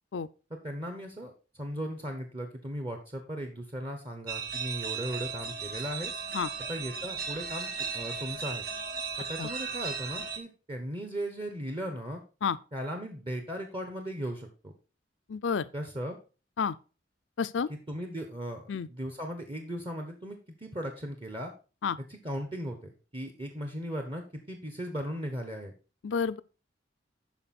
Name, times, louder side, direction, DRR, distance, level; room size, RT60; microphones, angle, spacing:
voice 1, 0.5-6.1 6.7-7.7 7.9-8.6 9.2-12.2 12.7-14.7 15.7-16.2 17.7-21.5 22.1-25.7, equal, 25° right, 1.1 m, -37 dB
sound 1, 4.3-10.4, right 5 dB, 60° right, 1.3 m, -36 dB
voice 2, 15.3-15.6 16.6-16.7 17.4-17.7 18.7-18.9 21.8-22.0 26.0-26.4, left 6 dB, 85° left, 0.5 m, -29 dB
12.0 x 4.6 x 4.2 m
head